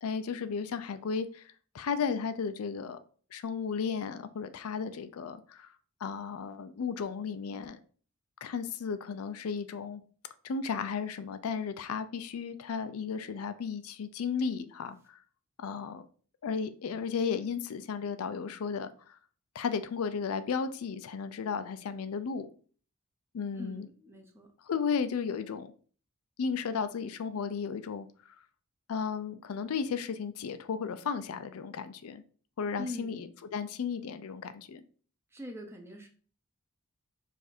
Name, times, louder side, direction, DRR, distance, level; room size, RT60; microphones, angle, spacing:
voice 1, 0.0-3.0 3.3-5.7 6.0-7.8 8.4-10.0 10.4-15.2 15.6-16.1 16.4-19.2 19.5-22.5 23.3-23.9 24.6-25.7 26.4-28.1 28.9-32.2 32.6-34.8, left 6 dB, 85° left, 0.4 m, -34 dB
voice 2, 23.5-24.5 32.8-33.2 35.3-36.1, left 1 dB, 10° right, 0.7 m, -42 dB
4.8 x 2.6 x 4.1 m
head